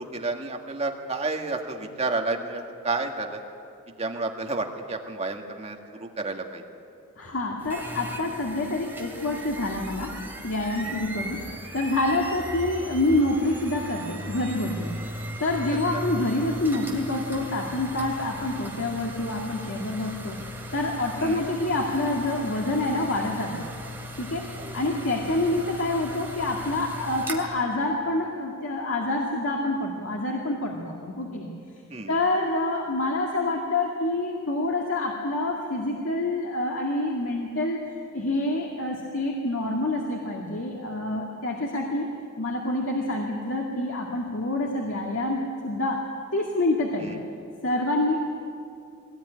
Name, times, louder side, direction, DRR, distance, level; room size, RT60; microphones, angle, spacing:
voice 1, 0.0-3.4 3.9-6.6 10.8-11.0 15.9-16.0 21.2-21.4 24.5-24.8 31.9-32.2 47.0-47.2, right 3 dB, 30° right, 3 dB, 1.9 m, -31 dB
voice 2, 7.2-10.1 10.4-11.4 11.7-14.9 15.4-20.4 20.7-23.5 24.2-24.5 24.7-31.5 32.1-37.8 38.1-42.1 42.4-46.0 46.3-47.1 47.6-48.2, left 2 dB, 65° left, -1 dB, 2.3 m, -27 dB
sound 1, 7.6-27.4, equal, 10° right, 2.6 m, -37 dB
22.0 x 18.0 x 9.7 m, 2.5 s
head